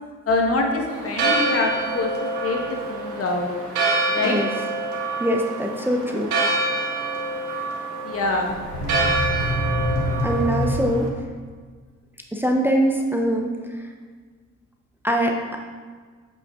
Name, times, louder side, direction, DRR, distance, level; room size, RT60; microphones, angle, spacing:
voice 1, 0.3-2.1 2.4-3.5 4.1-4.4 8.0-8.5, left 2 dB, 50° left, 1 dB, 1.3 m, -24 dB
Church bell, 0.9-11.1, right 2 dB, 75° right, 1.6 m, -26 dB
voice 2, 5.2-6.3 10.2-11.1 12.3-13.5 15.0-15.4, equal, 5° right, 1 dB, 0.7 m, -22 dB
sound 1, 8.5-11.3, equal, 75° left, 2.0 m, -26 dB
7.8 x 5.6 x 3.6 m, 1.5 s
cardioid pair, 90°, 30 cm